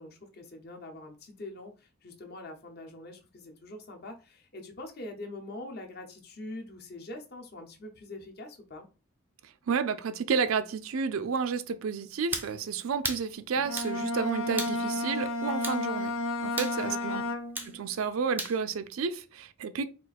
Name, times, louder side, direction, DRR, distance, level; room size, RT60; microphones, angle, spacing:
voice 1, 0.0-8.9 16.7-17.2, left 2 dB, 50° left, 0.8 m, -44 dB
voice 2, 9.7-16.1 16.4-17.2 17.7-19.9, right 5 dB, 90° right, 0.4 m, -31 dB
sound 1, 12.3-12.5 13.0-13.3 13.8-13.9 14.6-14.8 15.6-15.8 16.6-16.8 17.6-17.7 18.4-18.6, right 2 dB, 10° right, 0.4 m, -34 dB
Bowed string instrument, 13.6-17.8, left 2 dB, 80° left, 0.6 m, -32 dB
3.7 x 2.5 x 4.0 m
head